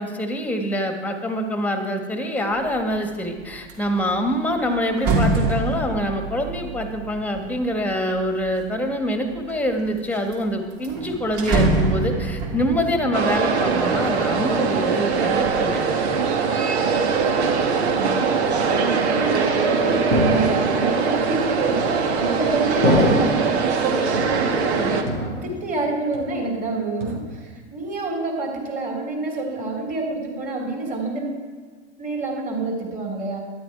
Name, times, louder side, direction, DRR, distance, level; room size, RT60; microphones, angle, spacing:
voice 1, 0.0-16.0, equal, 5° left, 5 dB, 1.5 m, -25 dB
sound 1, 2.6-3.0 3.4-8.7 9.3-10.0 10.3-10.4 10.7-14.6 15.0-15.6, right 3 dB, 45° right, 2.8 m, -26 dB
sound 2, 13.1-25.0, right 5 dB, 65° right, 1.4 m, -22 dB
voice 2, 17.8-18.2 18.5-25.1 25.4-31.4 32.0-33.5, right 3 dB, 25° right, 1 dB, 3.1 m, -28 dB
sound 3, 20.1-21.0 21.8-22.3 22.8-23.6 24.1-24.8 25.1-25.8 26.1-26.6 27.0-27.6, equal, 85° right, 2.6 m, -24 dB
12.0 x 10.0 x 4.7 m, 1.4 s
figure-of-eight pair, 95°, 35 cm